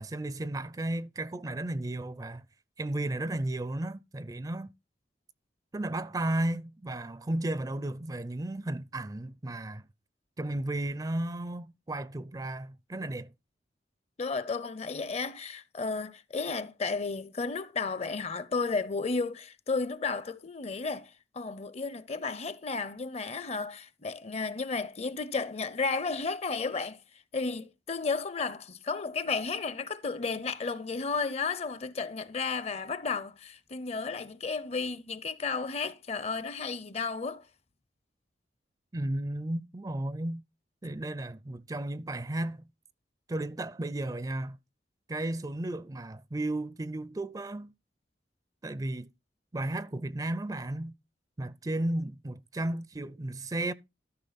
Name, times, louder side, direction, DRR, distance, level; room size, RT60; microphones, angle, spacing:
voice 1, 0.0-2.5 2.8-4.7 5.7-9.9 10.4-13.3 38.9-40.4 40.8-42.6 43.3-44.6 45.1-47.7 48.6-49.1 49.5-50.9 51.4-53.7, right 1 dB, 20° right, 0.4 m, -34 dB
voice 2, 14.2-27.0 27.3-37.5, left 4 dB, 35° left, 0.6 m, -33 dB
13.5 x 5.8 x 4.0 m
head